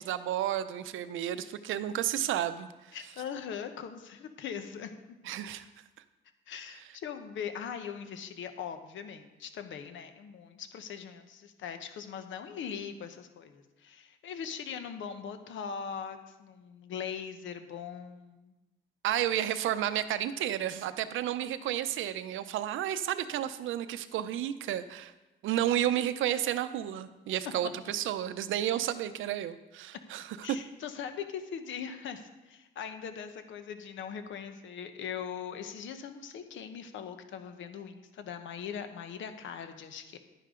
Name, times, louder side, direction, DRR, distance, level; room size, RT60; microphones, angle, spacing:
voice 1, 0.1-3.0 5.2-5.7 19.0-25.1 25.4-30.6, right 11 dB, 80° right, 12 dB, 0.7 m, -32 dB
voice 2, 2.9-4.9 6.5-18.5 30.4-40.2, left 7 dB, 75° left, 8 dB, 1.1 m, -41 dB
11.0 x 10.0 x 3.8 m, 1.0 s
cardioid pair, 90°, 20 cm